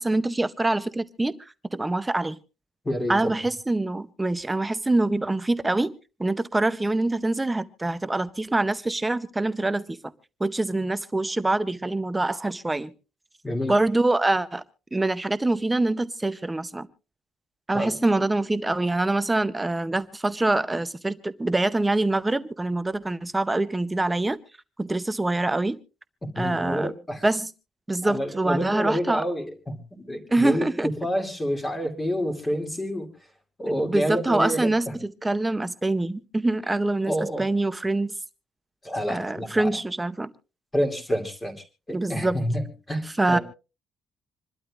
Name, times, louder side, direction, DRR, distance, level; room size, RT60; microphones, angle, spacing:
voice 1, 0.0-2.4 3.1-5.9 6.2-10.0 10.4-12.9 13.7-14.6 14.9-16.9 17.7-24.4 24.8-25.8 26.4-26.9 27.2-27.5 27.9-29.2 30.3-30.9 33.9-38.1 39.1-40.3 41.9-42.4 43.2-43.4, right 2 dB, 10° right, 12 dB, 0.6 m, -25 dB
voice 2, 2.8-3.3 13.4-13.7 17.7-17.9 26.4-27.2 28.0-30.7 31.0-33.1 33.6-35.0 37.1-37.5 38.8-39.7 40.7-41.5 41.9-43.4, equal, 15° left, 4 dB, 2.6 m, -28 dB
26.5 x 12.0 x 2.4 m, 0.31 s
cardioid pair, 175°, 0 cm